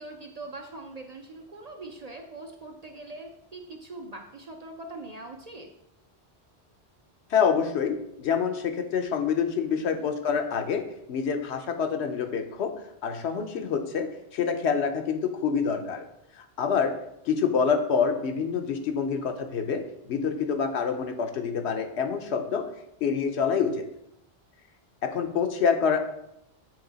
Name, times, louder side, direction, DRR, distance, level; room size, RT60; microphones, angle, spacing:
voice 1, 0.0-5.7 9.7-10.1, right 2 dB, 50° right, 3 dB, 0.5 m, -42 dB
voice 2, 7.3-10.8 11.1-12.7 13.0-16.1 16.4-16.9 17.3-19.8 20.1-22.6 23.0-23.8 25.0-26.0, left 6 dB, 75° left, 6 dB, 1.0 m, -26 dB
7.7 x 3.5 x 3.9 m, 0.79 s
omnidirectional pair, 1.1 m